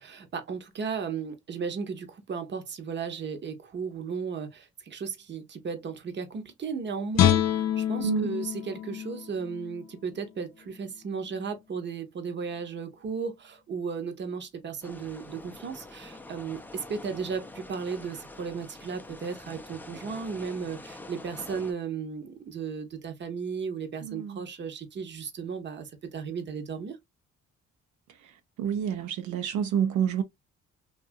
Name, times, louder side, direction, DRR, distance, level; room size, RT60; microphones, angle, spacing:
voice 1, 0.0-27.0, right 5 dB, 35° right, 0.7 m, -35 dB
Guitar, 7.1-10.3 10.7-10.9, left 11 dB, 60° left, 0.5 m, -27 dB
voice 2, 8.0-8.4 24.0-24.4 28.6-30.2, right 8 dB, 75° right, 0.5 m, -28 dB
sound 1, 14.8-21.7, left 2 dB, 5° left, 0.4 m, -45 dB
2.7 x 2.4 x 2.5 m
cardioid pair, 90°, 30 cm